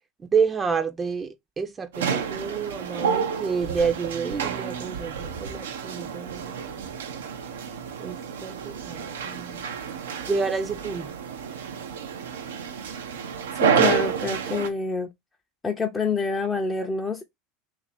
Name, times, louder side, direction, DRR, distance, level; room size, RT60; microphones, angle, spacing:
voice 1, 0.3-6.9 8.0-9.7 10.3-11.1, right 5 dB, 25° right, 0.5 m, -29 dB
sound 1, 1.9-14.7, right 7 dB, 80° right, 0.5 m, -29 dB
voice 2, 13.6-15.1 15.6-17.2, left 4 dB, 20° left, 0.6 m, -27 dB
2.8 x 2.6 x 4.1 m
hypercardioid pair, 85°, 0 cm